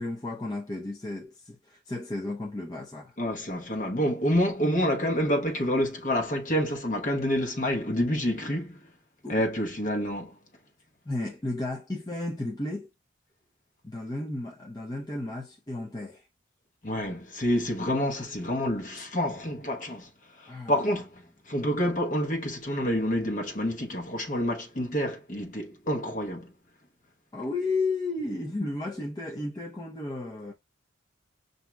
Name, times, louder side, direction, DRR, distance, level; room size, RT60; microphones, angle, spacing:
voice 1, 0.0-3.1 9.2-9.5 11.1-12.9 13.8-16.2 19.0-19.1 20.5-20.7 27.3-30.5, left 2 dB, 20° left, 0.6 m, -33 dB
voice 2, 3.2-8.8 9.3-10.3 16.8-20.1 20.4-21.1 21.5-26.5, equal, 40° left, 1.0 m, -28 dB
7.1 x 2.7 x 2.2 m
head